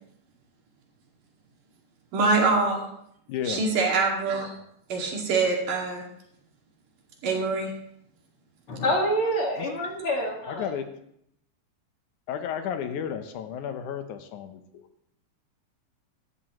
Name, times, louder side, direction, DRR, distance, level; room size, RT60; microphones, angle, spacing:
voice 1, 2.1-2.9 3.5-4.5 4.9-6.0 7.2-7.7, right 3 dB, 85° right, -1 dB, 3.9 m, -24 dB
voice 2, 3.3-3.7 9.6-9.7 10.5-10.9 12.3-14.8, left 8 dB, 75° left, 8 dB, 2.3 m, -33 dB
voice 3, 8.7-10.7, equal, 45° left, 0 dB, 2.6 m, -26 dB
14.5 x 12.5 x 3.1 m, 0.73 s
omnidirectional pair, 3.6 m